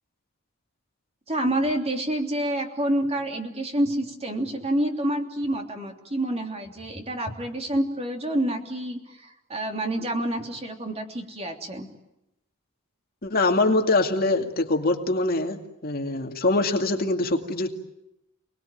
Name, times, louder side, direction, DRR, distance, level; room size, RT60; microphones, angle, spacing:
voice 1, 1.3-11.9, right 1 dB, 30° right, 3 dB, 3.1 m, -28 dB
voice 2, 13.2-17.7, left 2 dB, 45° left, 3 dB, 2.4 m, -23 dB
29.0 x 20.5 x 9.2 m, 0.89 s
head